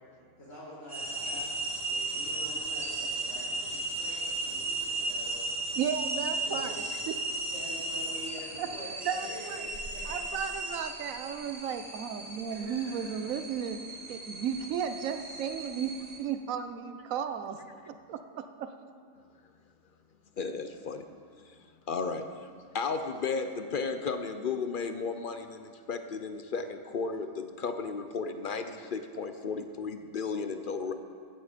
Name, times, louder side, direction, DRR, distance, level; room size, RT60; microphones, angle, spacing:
voice 1, 0.4-1.5 1.9-5.4 6.4-6.7 7.5-10.2 12.5-13.1, left 1 dB, 70° left, -12 dB, 3.8 m, -46 dB
sound 1, 0.9-16.2, right 2 dB, 30° right, 1.2 m, -36 dB
voice 2, 5.8-7.1 8.6-8.7 9.0-9.6 10.0-13.8 14.1-17.6 17.9-18.7, right 8 dB, 80° right, 8 dB, 1.1 m, -34 dB
voice 3, 20.4-21.1 21.4-21.5 21.9-30.9, left 4 dB, 55° left, 8 dB, 0.6 m, -34 dB
15.0 x 8.3 x 5.1 m, 2.2 s
omnidirectional pair, 1.4 m